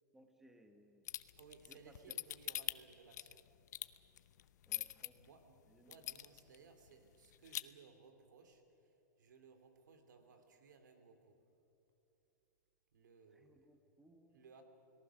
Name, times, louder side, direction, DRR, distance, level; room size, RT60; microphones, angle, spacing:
voice 1, 0.1-1.1 1.7-2.2 4.7-5.2 5.7-5.9 13.3-14.4, right 1 dB, 5° right, 6 dB, 1.2 m, -65 dB
sound 1, 1.1-5.1 5.5-5.6 5.9-6.6 6.9-7.0 7.2-7.6, left 12 dB, 70° left, 0.7 m, -42 dB
voice 2, 1.4-3.4 5.1-11.4 12.9-13.7 14.3-14.6, right 5 dB, 80° right, 6 dB, 3.1 m, -62 dB
30.0 x 18.5 x 6.3 m, 2.9 s
hypercardioid pair, 155°, 10 cm